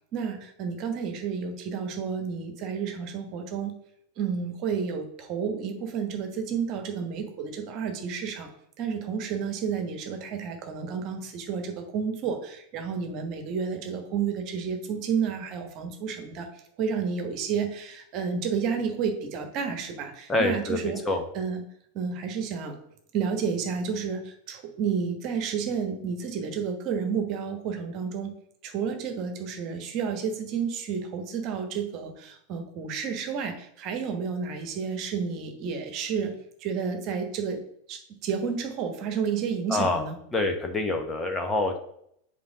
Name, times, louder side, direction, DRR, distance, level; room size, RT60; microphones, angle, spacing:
voice 1, 0.1-3.8 4.2-8.5 8.8-16.5 16.8-21.0 21.3-21.6 21.9-22.7 23.1-28.3 28.6-36.3 36.6-37.6 37.9-40.1, right 6 dB, 40° right, 5 dB, 1.3 m, -31 dB
voice 2, 20.3-21.2 39.7-40.0 40.3-41.8, left 2 dB, 15° left, 4 dB, 0.9 m, -26 dB
5.4 x 4.2 x 6.2 m, 0.70 s
figure-of-eight pair, 90°, 0 cm